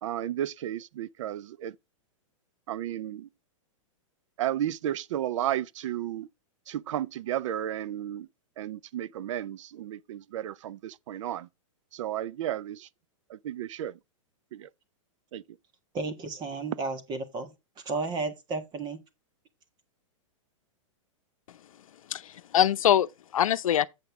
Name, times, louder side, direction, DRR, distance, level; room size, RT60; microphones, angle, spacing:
voice 1, 0.0-1.7 2.7-3.3 4.4-6.3 6.7-8.3 8.6-11.5 11.9-12.9 13.3-13.9 14.5-14.7 15.3-15.4, right 11 dB, 65° right, 0.5 m, -33 dB
voice 2, 15.9-17.5 17.8-19.0, right 3 dB, 25° right, 1.6 m, -33 dB
voice 3, 22.1-23.9, left 10 dB, 90° left, 0.7 m, -24 dB
8.0 x 7.6 x 3.5 m
hypercardioid pair, 145°, 17 cm